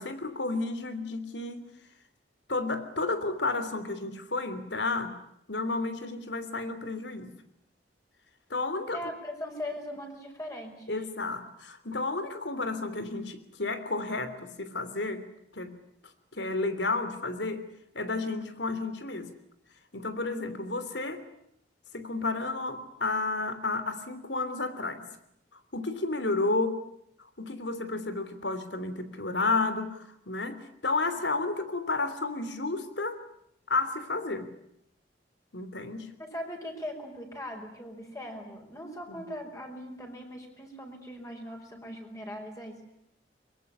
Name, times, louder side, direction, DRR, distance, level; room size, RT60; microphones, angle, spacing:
voice 1, 0.0-1.7 2.5-5.2 5.5-7.3 8.5-9.1 10.9-15.3 15.5-15.8 16.3-17.7 17.9-19.3 19.9-21.2 21.9-25.0 25.7-26.8 27.4-33.2 33.7-34.5 35.5-36.1 39.1-39.2, left 3 dB, 75° left, 11 dB, 3.2 m, -31 dB
voice 2, 8.9-11.0 36.2-42.8, equal, 20° left, 2 dB, 5.5 m, -40 dB
24.0 x 22.5 x 9.8 m, 0.76 s
head